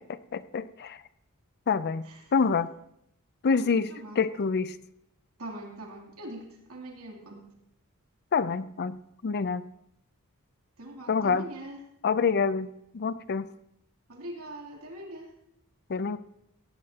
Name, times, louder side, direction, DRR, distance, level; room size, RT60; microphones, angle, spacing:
voice 1, 0.3-1.0 1.7-2.0 2.3-2.7 3.4-3.9 4.2-4.8 8.3-9.0 9.2-9.7 11.1-11.5 12.0-12.7 12.9-13.5 15.9-16.2, left 5 dB, 50° left, 15 dB, 0.5 m, -26 dB
voice 2, 3.5-4.2 5.4-7.5 10.8-11.8 14.1-15.3, right 1 dB, 70° right, 0 dB, 3.0 m, -42 dB
17.0 x 16.0 x 2.9 m, 0.78 s
head